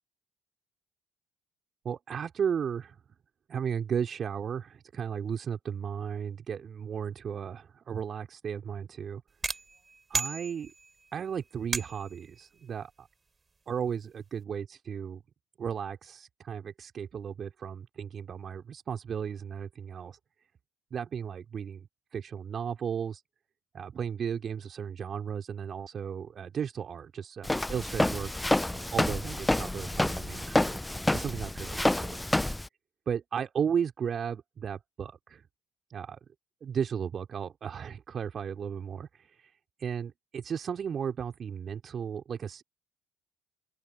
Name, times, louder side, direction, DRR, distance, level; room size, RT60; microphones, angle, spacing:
voice 1, 1.8-3.0 3.5-9.2 10.1-10.7 11.1-13.1 13.7-15.2 15.6-20.2 20.9-21.9 22.1-23.2 23.7-28.3 28.6-30.8 31.1-32.2 33.1-35.4 35.9-36.2 36.6-39.5 39.8-42.6, right 7 dB, 45° right, 3.6 m, -35 dB
sound 1, 9.4-11.1 11.7-12.3, right 4 dB, 30° right, 4.5 m, -34 dB
Walk footsteps, 27.4-32.7, left 1 dB, 10° left, 0.9 m, -28 dB
open air
hypercardioid pair, 55°, 0 cm